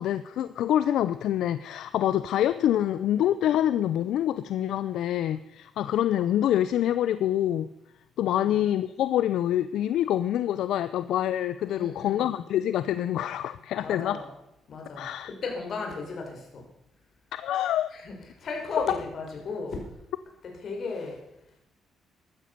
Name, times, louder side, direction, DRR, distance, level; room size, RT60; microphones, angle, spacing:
voice 1, 0.0-7.7 8.2-14.2 15.0-15.3 17.3-17.9, left 11 dB, 80° left, 14 dB, 0.6 m, -26 dB
voice 2, 11.7-12.3 13.8-14.3 14.7-16.7 17.9-19.8 20.4-21.2, left 4 dB, 55° left, 2 dB, 5.4 m, -35 dB
14.5 x 12.5 x 6.8 m, 0.88 s
cardioid pair, 90°, 0 cm